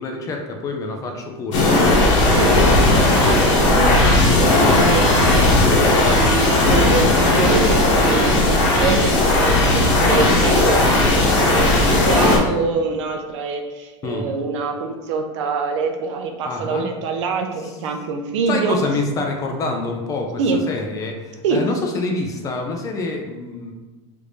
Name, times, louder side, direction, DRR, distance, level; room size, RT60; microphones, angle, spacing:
voice 1, 0.0-2.8 14.0-14.3 16.5-16.9 17.6-17.7 18.5-20.4 20.7-23.7, left 3 dB, 20° left, 2 dB, 0.4 m, -27 dB
sound 1, 1.5-12.4, left 2 dB, 85° left, 0.9 m, -16 dB
voice 2, 2.4-5.4 6.1-18.8 20.4-20.6 21.4-21.6, right 4 dB, 80° right, 5 dB, 0.5 m, -25 dB
3.4 x 2.6 x 3.1 m, 1.2 s
supercardioid pair, 150°, 15 cm